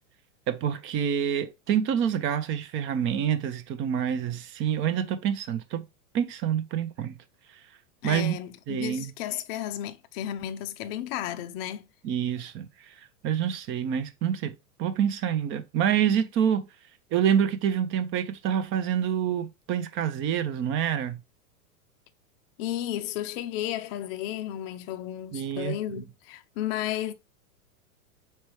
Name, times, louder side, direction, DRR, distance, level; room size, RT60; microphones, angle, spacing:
voice 1, 0.5-5.8 6.1-7.1 8.0-8.3 8.7-9.1 12.0-12.9 13.2-14.5 14.8-16.7 17.1-21.2 25.3-26.0, right 9 dB, 30° right, 0.5 m, -27 dB
voice 2, 8.0-11.9 22.6-27.1, left 12 dB, 40° left, 0.5 m, -33 dB
4.3 x 3.3 x 3.1 m
hypercardioid pair, 110°, 45 cm